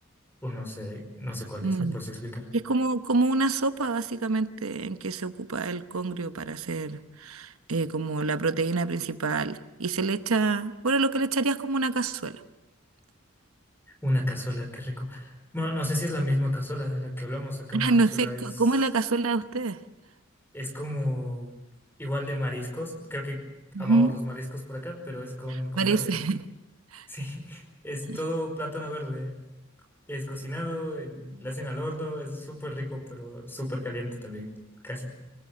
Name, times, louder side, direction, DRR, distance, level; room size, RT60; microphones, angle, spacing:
voice 1, 0.4-2.5 14.0-18.7 20.5-21.5 22.0-23.4 23.8-26.1 27.1-29.4 30.1-34.5 34.8-35.1, left 1 dB, 10° left, 3 dB, 5.0 m, -32 dB
voice 2, 1.6-2.0 2.5-12.4 17.7-19.8 23.7-24.1 25.8-26.4 26.9-27.1 28.1-28.2, right 3 dB, 90° right, 10 dB, 1.0 m, -26 dB
25.5 x 19.5 x 7.8 m, 1.0 s
head